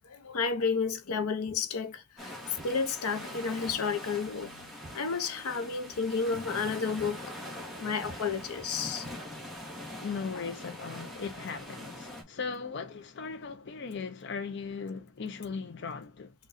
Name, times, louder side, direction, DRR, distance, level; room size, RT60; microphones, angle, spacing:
voice 1, 0.1-2.3 2.6-4.6 4.9-7.2 7.8-9.1 10.3-10.4, left 5 dB, 85° left, 0.7 m, -31 dB
Walk footsteps, 1.4-1.7 2.5-2.8 3.6-3.9 4.2-5.6 5.9-6.1 6.5-6.7 7.0-7.2 7.5-7.7 8.0-8.3 9.0-9.7, right 1 dB, 35° right, 0.8 m, -51 dB
sound 1, 2.2-12.2, left 1 dB, ahead, 1.0 m, -43 dB
voice 2, 10.0-16.3, left 5 dB, 50° left, 0.4 m, -38 dB
6.2 x 2.2 x 2.5 m
head